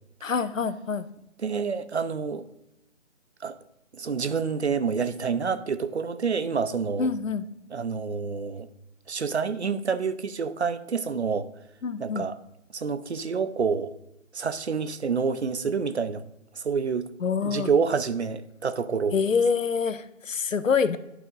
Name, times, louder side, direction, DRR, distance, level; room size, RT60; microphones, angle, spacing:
voice 1, 0.2-1.1 7.0-7.5 11.8-12.2 17.2-17.7 19.1-21.0, left 5 dB, 75° left, 14 dB, 0.7 m, -26 dB
voice 2, 1.4-2.5 3.4-3.6 3.9-7.1 7.7-8.7 9.1-11.5 12.0-12.4 12.7-14.0 14.3-16.2 16.5-17.1 17.4-19.2, right 5 dB, 55° right, 12 dB, 0.6 m, -28 dB
11.0 x 4.2 x 3.7 m, 0.89 s
figure-of-eight pair, 150°, 40 cm